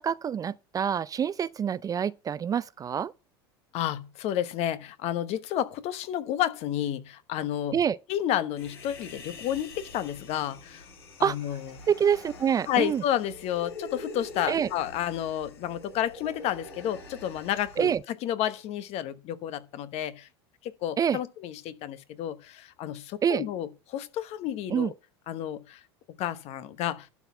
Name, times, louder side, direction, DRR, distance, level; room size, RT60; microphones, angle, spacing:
voice 1, 0.0-3.1 7.7-8.0 11.2-11.4 11.9-13.0 14.5-14.7 17.8-18.0 21.0-21.2 23.2-23.4 24.7-24.9, right 8 dB, 25° right, 0.4 m, -26 dB
voice 2, 3.7-7.8 8.1-10.9 11.2-11.8 12.7-20.3 20.6-24.9 25.3-25.8 26.2-27.1, left 11 dB, 55° left, 1.0 m, -31 dB
Human voice, 8.6-18.0, left 2 dB, 80° left, 5.1 m, -45 dB
12.0 x 4.1 x 6.8 m
hypercardioid pair, 90°, 13 cm